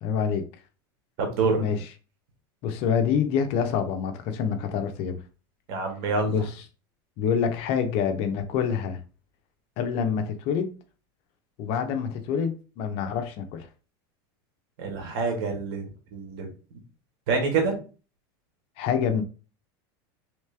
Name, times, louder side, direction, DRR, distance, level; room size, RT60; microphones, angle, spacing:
voice 1, 0.0-0.4 1.6-1.8 2.6-5.2 6.2-6.6 7.2-9.0 9.8-10.7 11.6-13.7 18.8-19.2, left 7 dB, 55° left, 0.7 m, -26 dB
voice 2, 1.2-1.6 5.7-6.3 14.8-16.5 17.3-17.8, right 4 dB, 70° right, 1.6 m, -26 dB
3.2 x 3.1 x 3.3 m
supercardioid pair, 135°, 12 cm